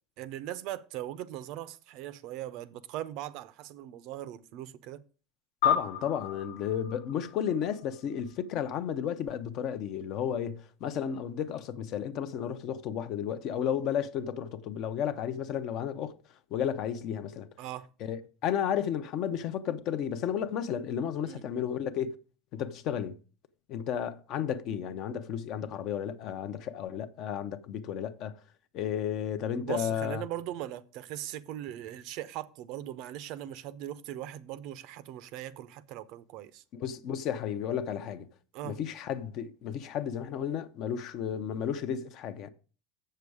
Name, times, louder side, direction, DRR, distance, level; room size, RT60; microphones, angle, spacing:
voice 1, 0.2-5.0 17.6-17.9 21.3-21.4 29.6-36.6 38.5-38.8, right 13 dB, 50° right, 0.5 m, -39 dB
sound 1, 5.6-8.4, left 9 dB, 85° left, 1.3 m, -32 dB
voice 2, 5.6-16.1 16.5-17.5 18.0-22.2 22.5-23.2 23.7-28.4 28.7-30.2 36.7-38.3 38.6-42.5, left 9 dB, 40° left, 0.6 m, -33 dB
7.7 x 6.7 x 4.8 m
supercardioid pair, 165°, 0 cm